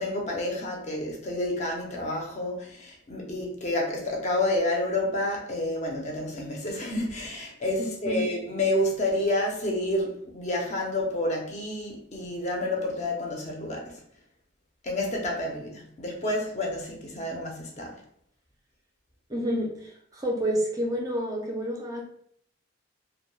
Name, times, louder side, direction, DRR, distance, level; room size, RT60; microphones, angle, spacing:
voice 1, 0.0-14.0 14.8-18.0, left 1 dB, 35° left, 0.5 m, -29 dB
voice 2, 7.8-8.3 19.3-22.0, equal, 20° right, 0.4 m, -29 dB
2.2 x 2.1 x 3.1 m
head